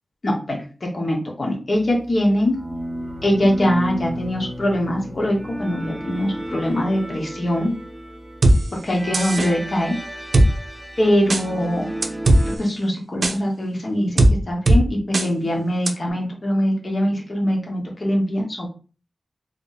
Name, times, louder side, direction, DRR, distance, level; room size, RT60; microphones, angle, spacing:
voice 1, 0.2-2.6 3.2-7.7 8.7-10.0 11.0-11.9 12.4-18.7, equal, 55° left, 0 dB, 1.2 m, -22 dB
sound 1, 2.5-12.6, equal, 10° right, 1.1 m, -33 dB
sound 2, 8.4-8.6 9.1-9.5 10.3-10.5 11.3-11.4 12.0-12.4 13.2-13.3 14.2-14.3 14.7-14.8 15.1-15.3 15.9-16.0, right 1 dB, 65° right, 0.6 m, -15 dB
3.5 x 2.6 x 4.0 m, 0.38 s
wide cardioid pair, 75°, 0 cm